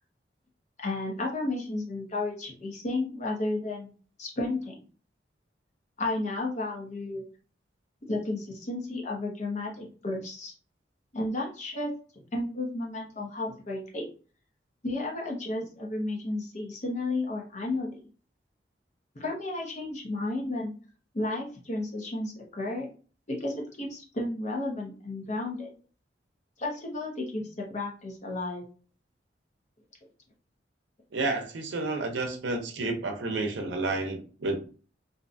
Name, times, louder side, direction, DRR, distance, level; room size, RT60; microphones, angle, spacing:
voice 1, 0.8-3.9 4.2-4.7 6.0-7.2 8.1-10.5 11.1-11.9 12.3-14.1 14.8-18.0 19.2-20.7 21.1-22.9 23.3-25.7 26.6-28.6, left 2 dB, 40° left, -1 dB, 0.8 m, -32 dB
voice 2, 31.1-34.6, right 2 dB, 90° right, 4 dB, 0.6 m, -30 dB
2.6 x 2.2 x 2.6 m, 0.39 s
head